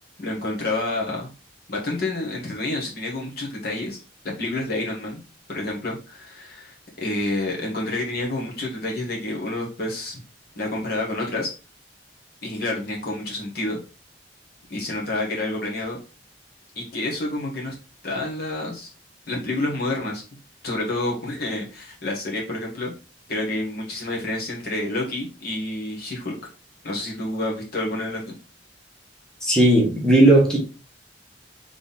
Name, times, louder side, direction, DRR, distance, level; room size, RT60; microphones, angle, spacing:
voice 1, 0.2-1.3 1.7-4.0 4.2-5.2 5.5-10.2 10.5-11.5 12.4-13.8 14.7-16.0 16.7-17.8 18.0-18.9 19.3-20.2 20.6-23.0 23.3-26.4 26.8-28.3, left 2 dB, 55° left, 1.5 m, -28 dB
voice 2, 29.4-30.6, right 1 dB, 5° left, 1.2 m, -16 dB
3.7 x 3.5 x 4.0 m
head